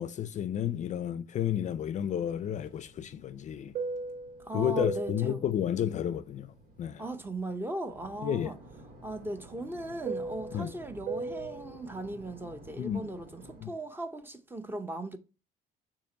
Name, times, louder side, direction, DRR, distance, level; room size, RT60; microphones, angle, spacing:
voice 1, 0.0-3.7 4.5-6.5 6.8-7.0 8.2-8.5 10.5-10.7 12.8-13.1 13.6-13.7, left 10 dB, 45° left, 0.4 m, -31 dB
Fixed-wing aircraft airplane, 2.1-7.5 7.9-13.7, right 3 dB, 85° right, 1.9 m, -41 dB
voice 2, 4.4-5.4 7.0-8.6 9.0-15.2, right 2 dB, 10° right, 0.7 m, -38 dB
6.9 x 2.9 x 5.2 m
cardioid pair, 110°, 17 cm